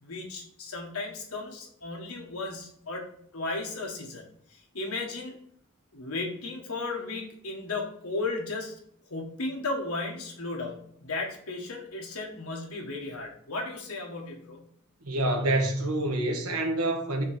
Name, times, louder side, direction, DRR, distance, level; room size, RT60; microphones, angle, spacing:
voice 1, 0.0-3.1 3.3-4.2 4.5-5.4 5.9-8.7 9.1-14.7, left 3 dB, 90° left, 1.5 m, -35 dB
voice 2, 15.0-17.2, right 1 dB, 90° right, 1.2 m, -27 dB
6.3 x 3.0 x 5.0 m
head